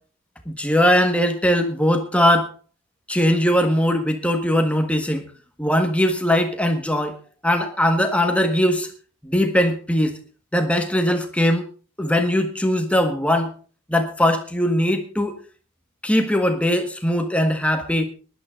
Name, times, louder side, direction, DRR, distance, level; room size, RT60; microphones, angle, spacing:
voice 1, 0.4-2.5 3.1-5.3 5.6-7.2 7.4-8.9 9.2-10.2 10.5-11.6 12.0-13.5 13.9-15.4 16.0-18.0, equal, 5° left, 6 dB, 1.5 m, -20 dB
19.0 x 11.5 x 3.8 m, 0.35 s
head